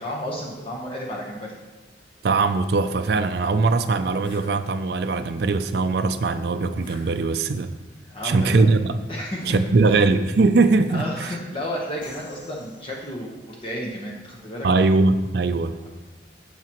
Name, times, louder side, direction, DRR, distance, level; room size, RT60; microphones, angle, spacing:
voice 1, 0.0-1.5 8.1-8.8 9.1-9.6 9.9-10.0 10.9-14.7, equal, 30° left, -2 dB, 1.0 m, -32 dB
voice 2, 2.2-7.7 8.2-8.9 9.5-11.3 14.6-15.9, right 3 dB, 55° right, 9 dB, 0.4 m, -21 dB
sound 1, 4.2-4.5 6.8-7.6 9.4-10.2 12.0-13.1, left 1 dB, 45° left, 2.3 m, -46 dB
15.0 x 5.9 x 3.0 m, 1.2 s
head